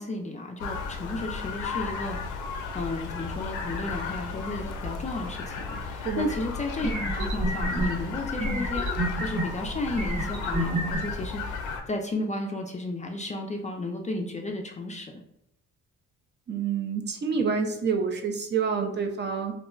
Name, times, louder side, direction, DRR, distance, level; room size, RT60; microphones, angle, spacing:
voice 1, 0.0-2.5 2.7-8.9 9.2-15.1, left 2 dB, 25° left, 2 dB, 0.4 m, -33 dB
sound 1, 0.6-11.8, left 4 dB, 90° left, 0.5 m, -34 dB
sound 2, 6.3-6.4 6.8-7.9 8.4-9.4 9.9-11.0, right 1 dB, 70° right, 1.4 m, -28 dB
voice 2, 16.5-19.5, right 6 dB, 35° right, 4 dB, 0.4 m, -27 dB
2.3 x 2.1 x 3.6 m, 0.78 s
cardioid pair, 90°, 30 cm